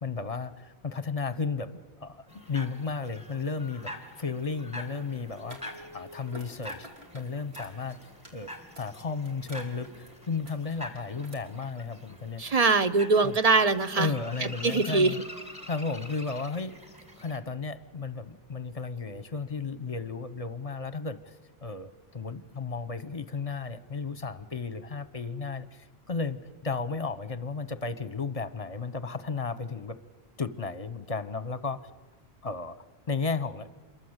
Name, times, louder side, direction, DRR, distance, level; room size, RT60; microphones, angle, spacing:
voice 1, 0.0-3.9 4.2-6.9 7.1-8.0 8.3-8.5 8.8-12.4 13.2-13.4 14.0-15.2 15.7-16.8 17.2-21.4 21.6-30.0 30.4-31.9 32.4-32.8 33.1-33.7, left 4 dB, 35° left, 14 dB, 1.0 m, -34 dB
sound 1, 2.3-17.4, left 1 dB, 5° right, 2.4 m, -45 dB
sound 2, 5.2-11.3, right 1 dB, 75° right, 4.0 m, -53 dB
voice 2, 12.4-14.1 14.6-15.1, right 4 dB, 40° right, 12 dB, 1.0 m, -22 dB
27.0 x 22.0 x 8.1 m, 1.3 s
omnidirectional pair, 1.1 m